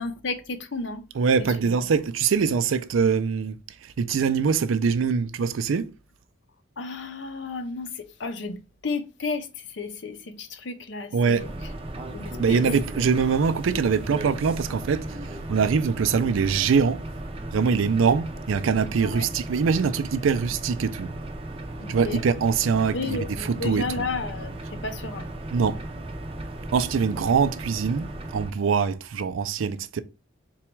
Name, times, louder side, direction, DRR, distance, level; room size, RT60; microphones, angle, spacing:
voice 1, 0.0-1.0 1.4-1.7 6.8-11.5 12.1-12.6 19.0-19.3 21.8-22.2 22.9-25.3, left 3 dB, 65° left, 0.6 m, -33 dB
voice 2, 1.2-5.9 11.1-11.5 12.4-17.0 17.5-21.1 21.9-24.0 25.5-25.8 26.7-30.0, right 5 dB, 80° right, 0.4 m, -23 dB
sound 1, 11.4-28.5, right 1 dB, 30° right, 0.5 m, -36 dB
4.0 x 2.3 x 4.4 m
head